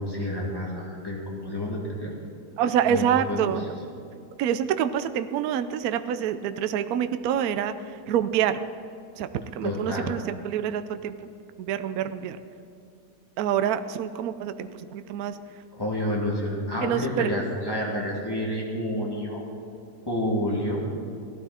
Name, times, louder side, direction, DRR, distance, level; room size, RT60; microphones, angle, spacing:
voice 1, 0.0-2.1 2.8-3.6 9.6-10.1 15.8-19.4 20.1-20.8, left 1 dB, 15° left, -4 dB, 2.6 m, -29 dB
voice 2, 2.6-3.6 4.4-7.7 8.1-8.6 9.2-11.1 11.6-12.4 13.4-15.4 16.8-17.3, right 9 dB, 70° right, 10 dB, 1.0 m, -26 dB
17.0 x 12.5 x 4.3 m, 2.5 s
omnidirectional pair, 1.8 m